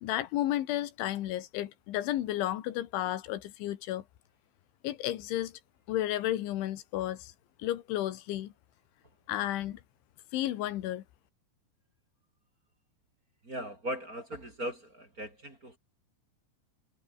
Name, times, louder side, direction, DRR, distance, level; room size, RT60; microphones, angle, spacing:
voice 1, 0.0-4.0 4.8-5.5 5.9-7.3 7.6-8.5 9.3-9.8 10.3-11.0, left 13 dB, 80° left, 3.9 m, -32 dB
voice 2, 13.4-15.8, right 1 dB, 20° right, 3.6 m, -38 dB
omnidirectional pair, 5.4 m